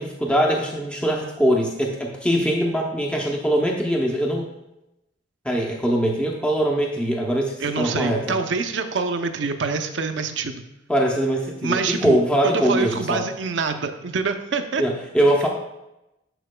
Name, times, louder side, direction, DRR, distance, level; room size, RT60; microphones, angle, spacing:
voice 1, 0.0-4.5 5.4-8.4 10.9-13.2 14.8-15.5, equal, 5° left, -1 dB, 0.6 m, -22 dB
voice 2, 7.6-10.6 11.6-14.8, right 4 dB, 70° right, 7 dB, 0.6 m, -25 dB
11.5 x 4.6 x 2.2 m, 0.92 s
head